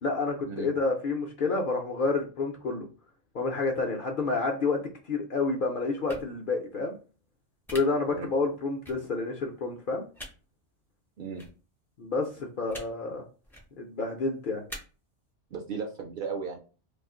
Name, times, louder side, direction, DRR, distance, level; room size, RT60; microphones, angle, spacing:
voice 1, 0.0-2.9 3.3-6.9 7.7-10.1 12.0-13.2 13.8-14.6, left 3 dB, 60° left, 1 dB, 0.6 m, -29 dB
sound 1, 6.1-6.2 7.7-7.8 8.8-8.9 10.1-10.3 11.4-11.5 12.7-12.9 13.4-13.6 14.7-14.8, equal, 5° left, 0.4 m, -41 dB
voice 2, 15.5-16.6, right 5 dB, 60° right, 2 dB, 0.6 m, -35 dB
2.4 x 2.3 x 3.6 m, 0.36 s
omnidirectional pair, 1.3 m